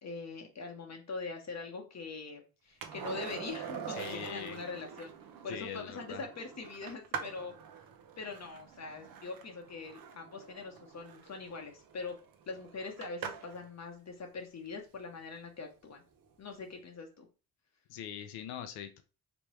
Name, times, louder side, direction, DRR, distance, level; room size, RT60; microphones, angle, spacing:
voice 1, 0.0-5.1 5.4-7.5 8.2-12.2 12.5-16.0 16.4-17.3, left 4 dB, 45° left, 3 dB, 0.8 m, -43 dB
Skateboard, 2.8-13.7 16.2-16.3, right 7 dB, 70° right, 0.7 m, -45 dB
voice 2, 3.9-4.6 5.5-6.2 17.9-19.0, left 9 dB, 85° left, 9 dB, 0.5 m, -42 dB
3.4 x 3.1 x 3.0 m, 0.33 s
supercardioid pair, 55°, 37 cm